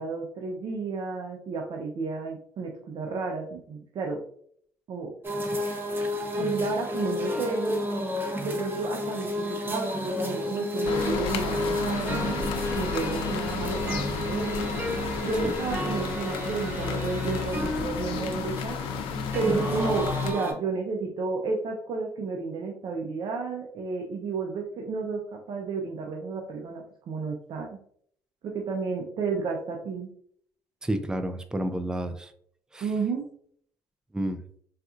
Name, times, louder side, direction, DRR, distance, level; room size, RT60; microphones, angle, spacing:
voice 1, 0.0-4.2 4.9-5.1 6.4-7.8 8.4-12.5 12.7-14.7 15.2-18.8 19.3-25.2 25.5-27.7 28.4-30.1 32.8-33.2, right 4 dB, 55° right, 1 dB, 0.6 m, -31 dB
sound 1, 5.2-20.5, left 1 dB, 25° right, 0.8 m, -31 dB
sound 2, 10.8-20.3, left 6 dB, 85° left, 0.4 m, -32 dB
voice 2, 30.8-32.3 32.7-32.9 34.1-34.4, right 1 dB, 10° right, 9 dB, 0.4 m, -30 dB
4.1 x 2.4 x 2.4 m, 0.63 s
cardioid pair, 85°, 9 cm